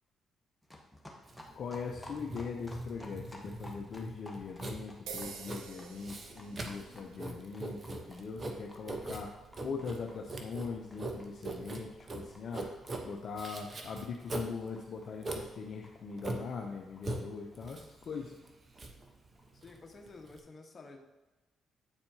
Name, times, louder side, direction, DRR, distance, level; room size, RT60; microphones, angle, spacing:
sound 1, 0.6-17.9 18.1-18.2 18.4-18.5 18.7-18.8 19.1-19.7, left 1 dB, ahead, 1.3 m, -56 dB
Writing, 1.2-20.4, right 2 dB, 40° right, 0.9 m, -42 dB
voice 1, 1.5-9.3 9.6-12.7 13.0-18.3, left 5 dB, 60° left, 1 dB, 0.6 m, -41 dB
sound 2, 5.1-13.2, right 6 dB, 85° right, 0.6 m, -52 dB
voice 2, 19.5-21.0, left 3 dB, 40° left, 2 dB, 1.2 m, -51 dB
8.8 x 4.3 x 2.8 m, 1.1 s
supercardioid pair, 55°, 0 cm